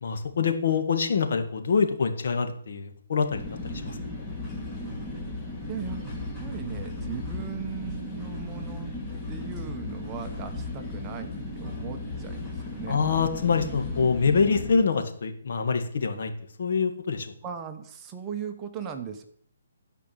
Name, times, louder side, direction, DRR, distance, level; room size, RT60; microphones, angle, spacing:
voice 1, 0.0-3.4 3.7-4.0 12.9-16.3 16.6-17.3, left 5 dB, 60° left, 6 dB, 1.8 m, -25 dB
sound 1, 3.3-14.7, left 2 dB, 15° left, 2.1 m, -35 dB
voice 2, 5.7-6.0 6.4-8.9 9.3-13.0 17.4-19.2, right 7 dB, 20° right, 5 dB, 1.1 m, -38 dB
12.5 x 5.2 x 8.7 m, 0.64 s
hypercardioid pair, 160°, 0 cm